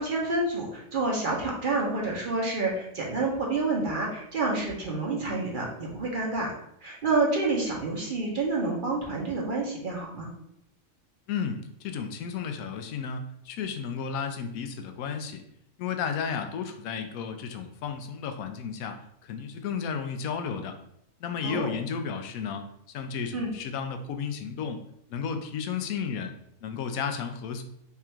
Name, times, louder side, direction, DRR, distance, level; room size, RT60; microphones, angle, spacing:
voice 1, 0.0-6.5 6.8-10.3 21.4-21.7 23.3-23.5, right 3 dB, 45° right, -2 dB, 0.8 m, -28 dB
voice 2, 11.3-15.4 15.8-20.8 21.2-24.8 25.1-26.3 26.6-27.6, left 6 dB, 90° left, 7 dB, 1.0 m, -33 dB
3.5 x 2.4 x 4.2 m, 0.74 s
omnidirectional pair, 1.4 m